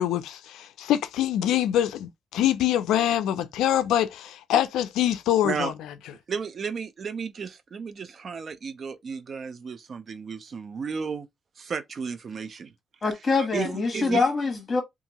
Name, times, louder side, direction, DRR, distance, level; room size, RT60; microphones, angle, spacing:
voice 1, 0.0-5.7, left 11 dB, 85° left, 0.3 m, -24 dB
voice 2, 6.3-11.3 11.6-12.7 13.5-14.3, right 5 dB, 45° right, 0.5 m, -33 dB
voice 3, 13.0-14.8, left 4 dB, 35° left, 1.3 m, -24 dB
2.7 x 2.5 x 2.8 m
cardioid pair, 90°, 0 cm